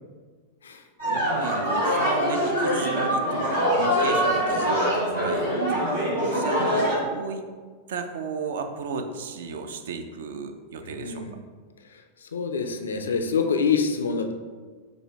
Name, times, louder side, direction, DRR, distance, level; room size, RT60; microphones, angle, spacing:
voice 1, 1.0-7.5 7.9-11.3, right 5 dB, 60° right, 6 dB, 0.3 m, -34 dB
sound 1, 1.0-7.0, equal, 75° right, 1.5 m, -24 dB
voice 2, 10.8-11.3 11.9-14.3, left 5 dB, 70° left, 5 dB, 0.3 m, -27 dB
4.9 x 2.2 x 3.2 m, 1.5 s
figure-of-eight pair, 90°, 0 cm